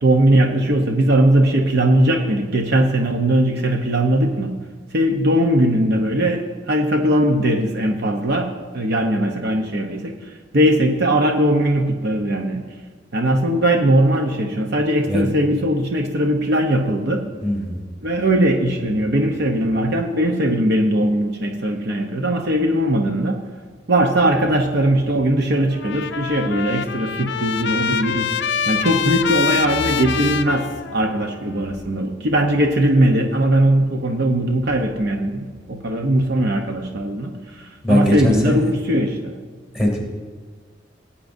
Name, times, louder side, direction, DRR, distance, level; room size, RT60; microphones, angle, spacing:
voice 1, 0.0-4.6 4.9-12.6 13.1-17.2 18.0-23.4 23.9-39.4, right 1 dB, 60° right, 3 dB, 0.8 m, -19 dB
voice 2, 17.4-17.8 37.8-38.6 39.7-40.0, equal, 5° right, -1 dB, 2.5 m, -19 dB
Trumpet, 25.7-31.3, left 7 dB, 60° left, 0.4 m, -25 dB
18.0 x 8.6 x 2.6 m, 1.5 s
head